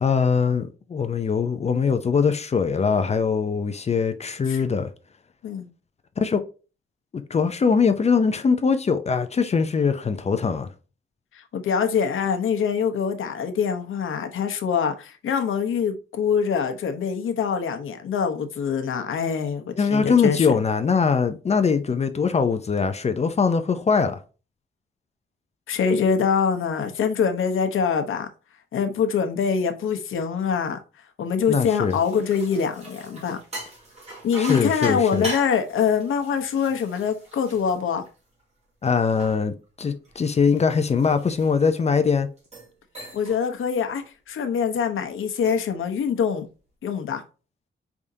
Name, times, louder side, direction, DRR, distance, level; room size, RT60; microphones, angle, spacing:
voice 1, 0.0-4.9 6.2-6.4 7.1-10.7 19.8-24.2 31.5-32.0 34.4-35.3 38.8-42.3, left 5 dB, 35° left, 0.4 m, -22 dB
voice 2, 11.3-20.5 25.7-28.3 28.7-30.8 31.2-33.4 34.2-38.0 43.1-46.5 46.8-47.2, left 6 dB, 85° left, 0.8 m, -24 dB
sound 1, 31.6-38.4 38.9-41.9 42.4-42.7 43.0-43.4 43.8-44.1 45.2-45.8, right 1 dB, 30° right, 2.4 m, -40 dB
4.9 x 3.5 x 2.6 m
wide cardioid pair, 140°, 20 cm